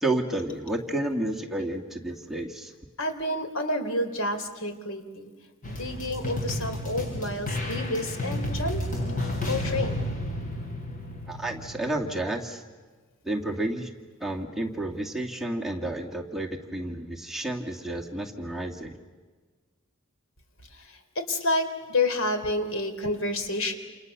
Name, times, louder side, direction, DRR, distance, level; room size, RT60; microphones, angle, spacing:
voice 1, 0.0-2.7 11.3-12.6 13.2-13.9 14.2-19.0, right 1 dB, ahead, 0 dB, 2.3 m, -31 dB
voice 2, 3.0-5.3 5.6-8.8 9.4-10.0 20.7-23.7, left 2 dB, 90° left, 7 dB, 3.7 m, -29 dB
sound 1, 5.6-12.2, left 1 dB, 40° left, 6.5 m, -32 dB
29.0 x 28.5 x 6.8 m, 1.4 s
head